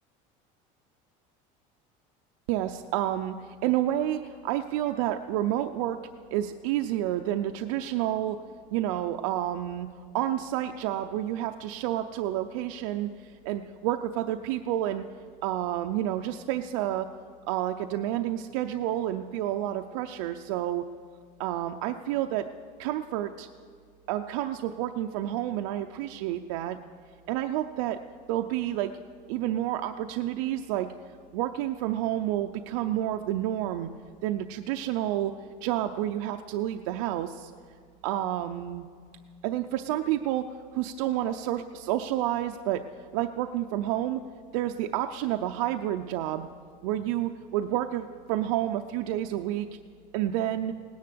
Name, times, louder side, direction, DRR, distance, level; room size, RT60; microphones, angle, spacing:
voice 1, 2.5-6.0 6.3-8.4 8.7-9.9 10.1-15.0 15.4-17.1 17.5-20.8 21.4-22.5 22.8-23.5 24.1-26.8 27.3-28.0 28.3-28.9 29.3-30.9 31.3-33.9 34.2-35.3 35.6-37.5 38.0-38.9 39.4-44.2 44.5-46.5 46.8-49.7 50.1-50.8, right 12 dB, 90° right, 6 dB, 0.6 m, -29 dB
18.0 x 10.5 x 6.8 m, 2.2 s
cardioid pair, 180°, 17 cm